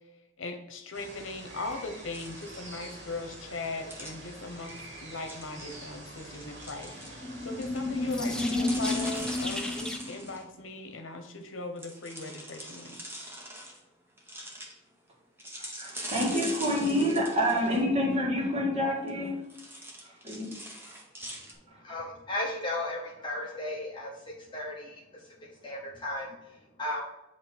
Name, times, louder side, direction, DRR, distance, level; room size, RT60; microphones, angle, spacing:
voice 1, 0.4-13.0, left 3 dB, 80° left, 6 dB, 0.9 m, -39 dB
sound 1, 0.9-9.4, right 1 dB, 65° right, 2.0 m, -46 dB
sound 2, 2.1-3.0 3.9-4.2 4.7-4.8 5.1-5.9 6.3-7.8 8.1-10.4 11.8-13.8 14.2-14.7 15.4-17.8 19.1-19.2 19.5-21.5, right 1 dB, 10° right, 1.1 m, -42 dB
sound 3, 7.0-10.3, left 2 dB, 5° left, 0.5 m, -31 dB
voice 2, 15.6-19.4 20.0-20.5 20.9-21.0 21.7-21.8, equal, 35° right, -2 dB, 1.7 m, -28 dB
voice 3, 21.8-27.0, left 1 dB, 25° left, -3 dB, 0.9 m, -36 dB
7.9 x 3.1 x 4.4 m, 0.95 s
head